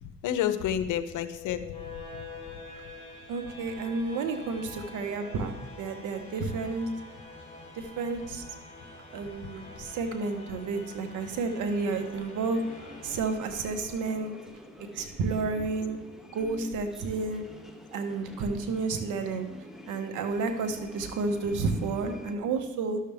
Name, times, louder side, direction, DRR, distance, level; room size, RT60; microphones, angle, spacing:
voice 1, 0.0-2.2 2.5-2.6 9.4-9.5, left 10 dB, 85° left, 11 dB, 0.7 m, -31 dB
sound 1, 1.0-14.0, left 3 dB, 20° left, 2.8 m, -46 dB
voice 2, 3.3-6.9 7.7-8.4 9.1-12.6 13.0-14.3 14.9-16.0 16.3-17.4 17.9-19.5 19.9-23.0, right 4 dB, 85° right, 5 dB, 1.0 m, -31 dB
sound 2, 11.7-22.4, equal, ahead, 1.1 m, -48 dB
11.5 x 6.6 x 3.4 m, 1.2 s
cardioid pair, 90°, 30 cm